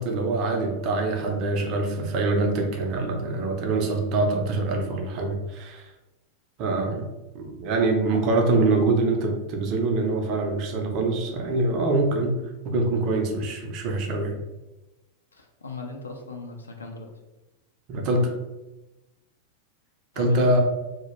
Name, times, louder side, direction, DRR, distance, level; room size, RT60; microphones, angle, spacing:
voice 1, 0.0-5.9 6.6-7.1 7.3-12.4 12.6-14.4 17.9-18.3 20.2-20.6, right 2 dB, 40° right, 2 dB, 0.4 m, -24 dB
voice 2, 15.3-17.1 20.1-20.6, left 3 dB, 75° left, 2 dB, 0.3 m, -38 dB
2.2 x 2.0 x 2.9 m, 1.0 s
figure-of-eight pair, 90°, 0 cm